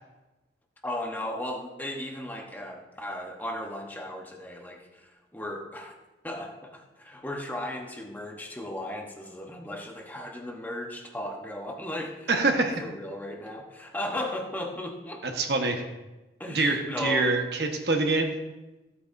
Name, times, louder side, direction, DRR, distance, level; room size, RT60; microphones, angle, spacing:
voice 1, 0.8-5.9 6.2-15.3 16.4-17.4, left 1 dB, 10° left, 1 dB, 1.1 m, -36 dB
voice 2, 12.3-12.8 15.2-15.8 16.5-18.3, right 3 dB, 65° right, 3 dB, 1.3 m, -25 dB
15.5 x 8.5 x 2.7 m, 1.1 s
head